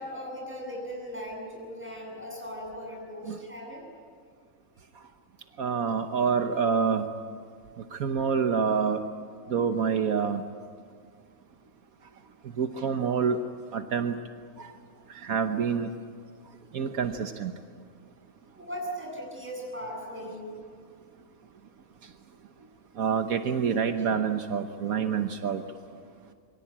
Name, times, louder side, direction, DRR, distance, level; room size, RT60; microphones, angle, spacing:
voice 1, 0.0-3.8 18.6-20.6, equal, 10° right, -2 dB, 7.9 m, -38 dB
voice 2, 5.6-7.0 7.9-9.0 9.5-10.4 12.6-13.4 13.7-14.1 15.3-15.9 16.7-17.5 23.0-25.6, right 6 dB, 75° right, 7 dB, 1.5 m, -27 dB
27.0 x 23.5 x 8.7 m, 2.1 s
omnidirectional pair, 1.5 m